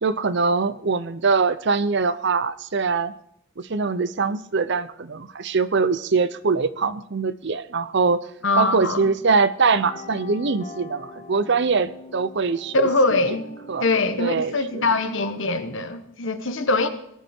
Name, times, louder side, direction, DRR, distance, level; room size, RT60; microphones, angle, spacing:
voice 1, 0.0-3.1 3.6-8.3 8.6-12.9 13.7-13.9 14.2-14.9, right 4 dB, 55° right, 15 dB, 0.6 m, -23 dB
voice 2, 8.4-9.0 12.7-13.5 13.8-16.9, left 2 dB, 60° left, 9 dB, 1.4 m, -22 dB
sound 1, 9.7-15.3, left 2 dB, 45° left, 2.8 m, -42 dB
19.0 x 12.0 x 4.5 m, 0.74 s
head